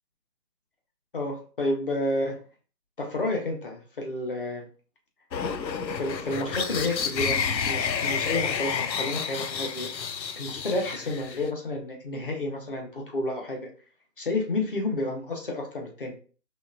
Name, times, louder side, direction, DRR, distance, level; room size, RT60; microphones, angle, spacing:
voice 1, 1.1-2.4 3.0-4.7 6.0-7.4 7.6-9.9 10.4-13.6 14.2-16.1, left 2 dB, 30° left, 1 dB, 0.9 m, -30 dB
sound 1, 5.3-11.5, left 6 dB, 85° left, 0.7 m, -30 dB
5.0 x 3.3 x 2.5 m, 0.40 s
hypercardioid pair, 165°, 50 cm